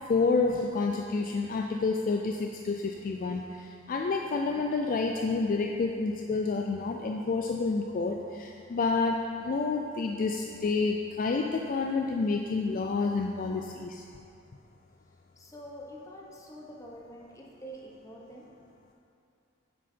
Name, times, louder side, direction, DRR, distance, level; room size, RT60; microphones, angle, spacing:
voice 1, 0.1-14.0, left 4 dB, 45° left, 2 dB, 0.3 m, -29 dB
voice 2, 15.4-18.5, equal, 15° left, -2 dB, 0.9 m, -46 dB
7.8 x 6.3 x 4.3 m, 2.6 s
head